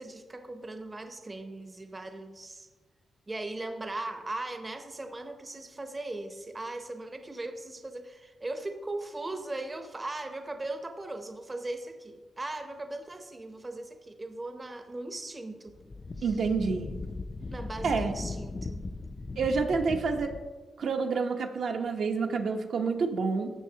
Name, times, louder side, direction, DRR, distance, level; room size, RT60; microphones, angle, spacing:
voice 1, 0.0-2.7 3.3-15.8 16.2-16.3 17.5-18.8, right 2 dB, 25° right, 6 dB, 0.7 m, -38 dB
Wind, 15.7-20.5, left 3 dB, 30° left, 0.4 m, -38 dB
voice 2, 16.2-16.9 17.8-18.1 19.4-20.3 20.8-23.5, right 4 dB, 70° right, 3 dB, 0.9 m, -28 dB
12.5 x 7.2 x 2.8 m, 1.3 s
cardioid pair, 115°, 0 cm